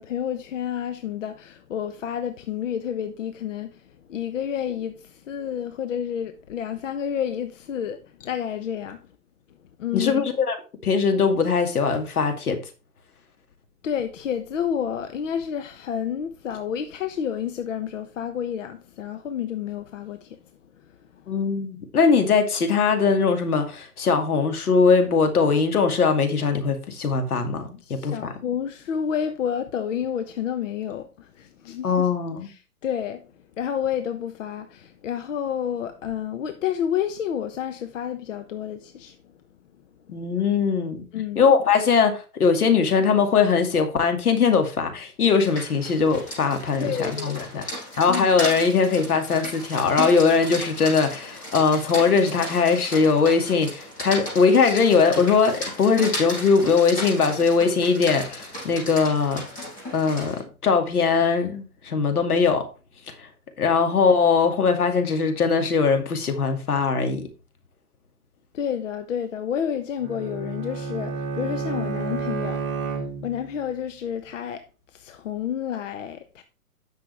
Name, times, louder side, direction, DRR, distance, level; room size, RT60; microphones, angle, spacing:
voice 1, 0.0-9.0 9.8-10.3 13.8-20.4 21.1-21.3 27.8-32.1 32.4-33.3 33.6-39.2 41.1-41.5 46.8-47.7 48.1-48.3 68.5-72.6 73.2-74.6 74.9-76.4, left 9 dB, 55° left, 1.1 m, -30 dB
voice 2, 9.9-10.6 10.8-12.6 21.3-28.3 31.8-32.5 40.1-41.0 41.4-47.6 48.0-59.4 59.9-62.6 63.6-67.3, left 5 dB, 80° left, 2.5 m, -21 dB
Rain, 45.3-60.4, left 1 dB, 20° left, 6.0 m, -35 dB
Bowed string instrument, 70.0-73.6, right 4 dB, 30° right, 2.4 m, -30 dB
10.0 x 6.7 x 3.4 m
hypercardioid pair, 145°, 44 cm